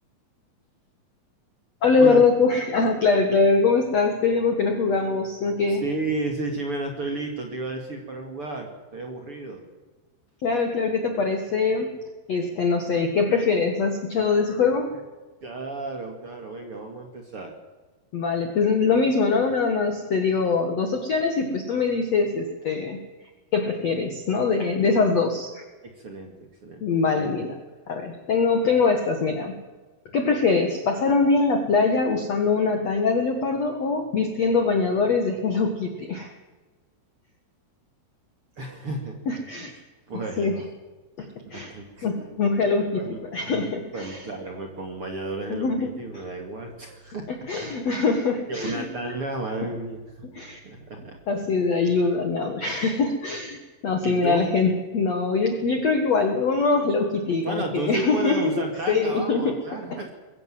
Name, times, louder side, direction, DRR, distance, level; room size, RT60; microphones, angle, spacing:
voice 1, 1.8-5.8 10.4-11.9 12.3-15.0 18.1-23.0 23.5-25.6 26.8-27.5 27.9-29.5 30.1-36.3 39.3-39.7 40.4-40.5 41.2-41.7 42.0-43.0 43.3-44.2 45.5-45.9 47.5-48.9 50.3-50.6 51.3-58.4 58.9-59.6 59.9-60.0, left 4 dB, 85° left, 5 dB, 1.4 m, -23 dB
voice 2, 5.7-9.6 15.4-17.5 25.8-26.3 26.6-26.8 27.1-27.3 38.6-39.7 40.1-40.6 41.4-42.2 42.6-43.2 43.5-47.3 47.6-48.1 48.5-50.3 50.6-51.2 54.0-54.5 57.4-60.1, right 2 dB, 40° right, 3 dB, 2.0 m, -33 dB
22.0 x 16.0 x 7.7 m, 1.3 s
omnidirectional pair, 5.8 m